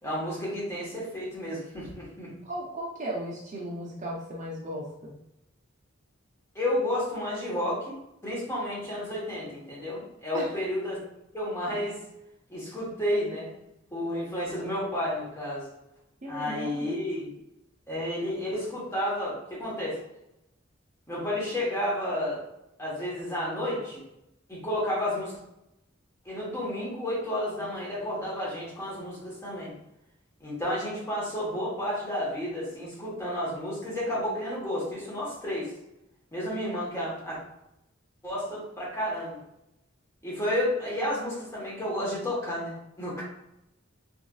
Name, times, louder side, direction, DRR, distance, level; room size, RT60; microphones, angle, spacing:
voice 1, 0.0-2.3 6.5-11.0 11.3-12.0 12.5-13.5 13.9-15.7 16.3-17.3 17.9-20.0 21.1-22.4 22.8-24.0 24.5-25.4 26.2-29.7 30.4-35.7 36.3-37.4 38.2-39.4 40.2-43.2, left 1 dB, 15° left, -7 dB, 1.1 m, -31 dB
voice 2, 2.4-5.1 10.3-10.5 16.2-17.0, right 1 dB, 40° right, -3 dB, 0.5 m, -36 dB
3.1 x 2.5 x 2.3 m, 0.86 s
head